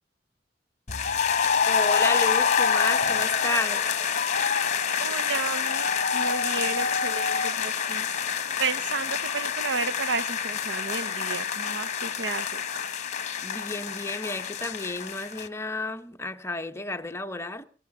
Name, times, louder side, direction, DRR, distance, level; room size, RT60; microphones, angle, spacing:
sound 1, 0.9-15.5, left 6 dB, 40° left, 1.1 m, -27 dB
voice 1, 1.7-3.9 13.4-17.6, left 2 dB, 15° left, 0.8 m, -32 dB
voice 2, 5.0-8.1 8.6-12.6, right 4 dB, 85° right, 0.8 m, -32 dB
17.0 x 16.0 x 4.8 m
head